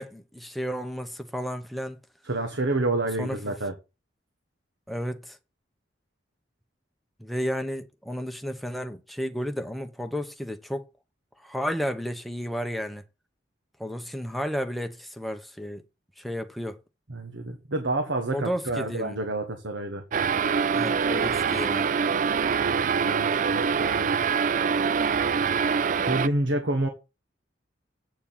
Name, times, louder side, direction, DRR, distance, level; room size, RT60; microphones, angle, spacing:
voice 1, 0.0-2.0 3.2-3.5 4.9-5.4 7.2-10.9 11.4-13.0 13.8-15.8 16.2-16.8 18.3-19.2 20.7-21.9, equal, ahead, 0.9 m, -32 dB
voice 2, 2.2-3.7 17.1-20.0 22.5-24.2 26.1-26.9, right 2 dB, 80° right, 1.4 m, -29 dB
sound 1, 20.1-26.3, right 6 dB, 45° right, 0.4 m, -24 dB
8.5 x 4.4 x 7.3 m
head